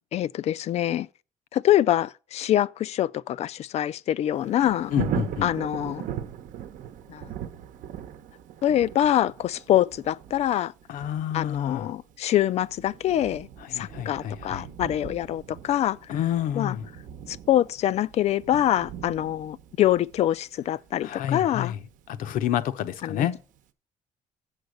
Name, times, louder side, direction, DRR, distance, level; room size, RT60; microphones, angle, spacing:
voice 1, 0.1-1.1 1.5-4.9 5.4-6.0 7.1-7.3 8.6-10.7 11.3-16.0 16.6-16.8 17.3-21.7 23.0-23.3, left 12 dB, 50° left, 0.4 m, -25 dB
Thunder, 4.3-23.1 23.6-23.7, right 9 dB, 70° right, 0.9 m, -40 dB
voice 2, 4.9-5.5 10.9-11.9 13.6-14.7 16.1-16.9 21.0-23.4, left 10 dB, 80° left, 0.8 m, -29 dB
7.9 x 6.6 x 6.4 m
cardioid pair, 135°, 14 cm